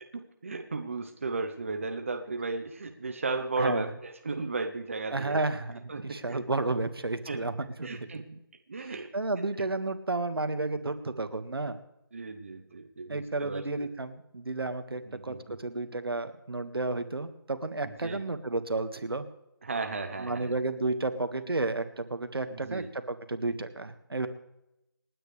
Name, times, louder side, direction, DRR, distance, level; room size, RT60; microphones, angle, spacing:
voice 1, 0.1-5.4 5.9-6.4 7.3-7.4 7.8-8.4 8.7-9.1 12.1-13.6 15.1-15.6 17.8-18.2 19.6-20.5 22.5-22.9, right 3 dB, 35° right, 6 dB, 0.9 m, -35 dB
voice 2, 3.6-3.9 5.1-8.2 9.1-11.8 13.1-19.2 20.2-24.3, right 2 dB, 80° right, 9 dB, 1.7 m, -32 dB
28.0 x 9.5 x 3.3 m, 0.88 s
figure-of-eight pair, 175°, 12 cm